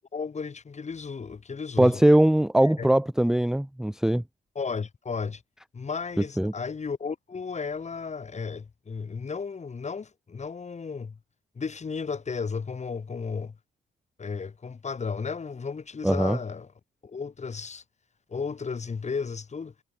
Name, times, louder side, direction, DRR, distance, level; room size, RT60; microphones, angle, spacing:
voice 1, 0.1-2.1 2.8-2.9 4.5-5.4 5.7-11.2 11.6-13.6 14.2-16.7 17.0-17.8 18.3-19.7, left 5 dB, 35° left, 4.0 m, -34 dB
voice 2, 1.8-4.2 6.4-6.5 16.0-16.4, right 1 dB, ahead, 0.5 m, -21 dB
cardioid pair, 90°, 20 cm